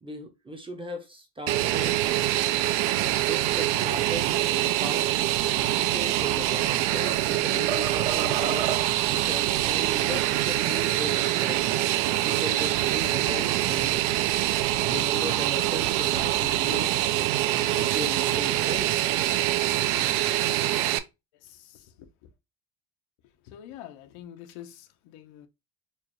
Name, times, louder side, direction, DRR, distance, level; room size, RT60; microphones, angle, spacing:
voice 1, 0.0-2.1 3.3-5.1 5.8-11.6 12.2-14.0 14.9-16.9 17.5-18.9, equal, 10° right, 0.5 m, -37 dB
Fixed-wing aircraft airplane, 1.5-21.0, right 14 dB, 90° right, 0.6 m, -25 dB
sound 1, 6.2-7.3 7.7-9.1, right 9 dB, 60° right, 0.8 m, -33 dB
voice 2, 21.4-22.3 23.4-25.5, left 11 dB, 85° left, 0.8 m, -46 dB
4.5 x 2.3 x 2.9 m
cardioid pair, 150°, 48 cm